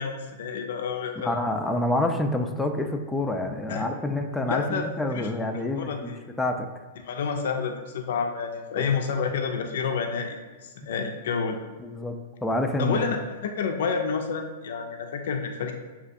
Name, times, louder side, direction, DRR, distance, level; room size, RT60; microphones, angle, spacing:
voice 1, 0.0-1.3 3.7-3.8 4.5-5.3 5.8-6.2 7.1-11.6 12.8-15.7, left 5 dB, 65° left, 4 dB, 0.5 m, -29 dB
voice 2, 1.2-6.7 8.8-8.9 11.8-12.1 12.4-13.2, left 1 dB, 5° left, 3 dB, 0.4 m, -27 dB
6.6 x 2.4 x 2.6 m, 1.3 s
hypercardioid pair, 110°, 0 cm